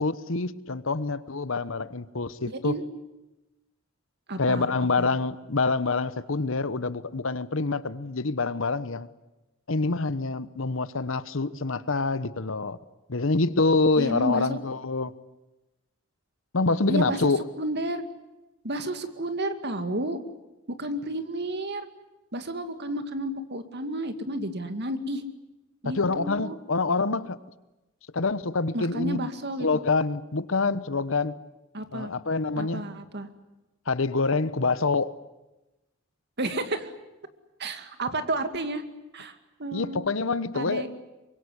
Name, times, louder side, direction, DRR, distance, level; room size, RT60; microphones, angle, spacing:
voice 1, 0.0-2.7 4.4-9.1 9.7-12.8 13.1-15.1 16.5-17.4 25.8-27.4 28.1-29.3 29.6-31.4 31.9-32.9 33.9-35.1 39.7-40.8, left 3 dB, 65° left, 15 dB, 1.1 m, -26 dB
voice 2, 2.5-2.8 4.3-5.1 14.0-14.6 16.9-17.3 17.6-18.0 18.6-20.2 20.8-21.9 22.3-25.2 25.8-26.6 28.7-29.7 31.7-32.1 32.5-33.3 36.4-36.9 37.6-38.8 39.1-40.0 40.5-40.9, right 1 dB, 55° right, 9 dB, 2.3 m, -31 dB
24.5 x 22.5 x 9.9 m, 1.0 s
head